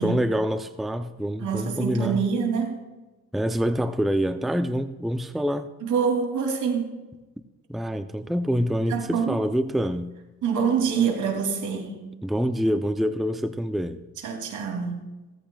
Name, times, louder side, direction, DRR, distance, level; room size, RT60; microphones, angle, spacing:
voice 1, 0.0-2.2 3.3-5.7 7.7-10.1 12.2-14.0, equal, ahead, 9 dB, 0.5 m, -26 dB
voice 2, 1.4-2.8 5.8-6.9 8.9-9.4 10.4-11.9 14.2-15.1, right 6 dB, 75° right, 2 dB, 2.8 m, -25 dB
17.0 x 14.0 x 2.3 m, 1.1 s
cardioid pair, 90°, 30 cm